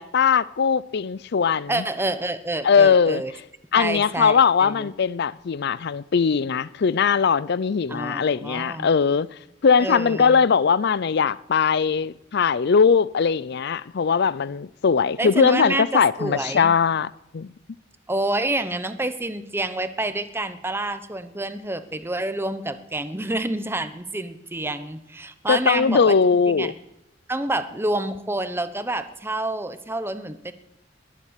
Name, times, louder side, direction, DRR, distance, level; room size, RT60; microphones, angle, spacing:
voice 1, 0.0-1.8 2.6-3.2 3.7-9.3 9.6-17.5 25.5-26.7, left 6 dB, 60° left, 0.5 m, -20 dB
voice 2, 1.7-3.3 3.8-4.9 7.9-8.9 9.8-10.4 15.2-16.7 18.1-26.2 26.5-26.7 27.3-30.5, right 2 dB, 15° right, 0.9 m, -28 dB
21.5 x 7.4 x 8.3 m
head